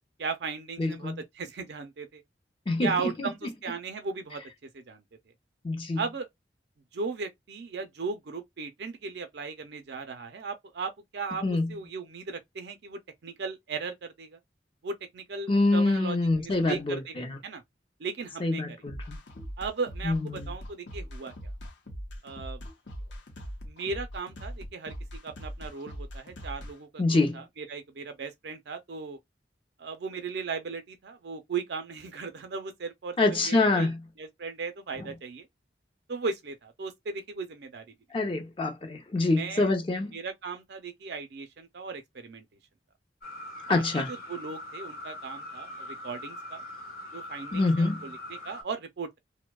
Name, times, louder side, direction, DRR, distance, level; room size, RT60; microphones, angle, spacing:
voice 1, 0.2-2.2 2.8-4.4 4.7-5.0 6.0-6.3 6.9-14.4 14.8-17.6 18.0-18.8 19.6-21.5 22.2-22.6 23.6-24.9 25.2-29.2 29.8-33.9 34.2-35.5 36.1-37.9 39.3-39.7 40.1-42.4 43.7-46.6 47.1-49.2, right 4 dB, 65° right, 0.5 m, -37 dB
voice 2, 0.8-1.2 2.7-3.3 5.6-6.0 11.4-11.7 15.5-17.4 18.4-19.2 20.0-20.5 27.0-27.4 33.2-34.0 35.0-35.1 38.1-40.2 43.7-44.1 47.5-48.0, left 2 dB, 30° left, 0.5 m, -26 dB
sound 1, 18.9-26.7, equal, 85° left, 0.8 m, -41 dB
sound 2, 43.2-48.6, left 1 dB, 60° left, 0.9 m, -42 dB
2.6 x 2.0 x 2.2 m
head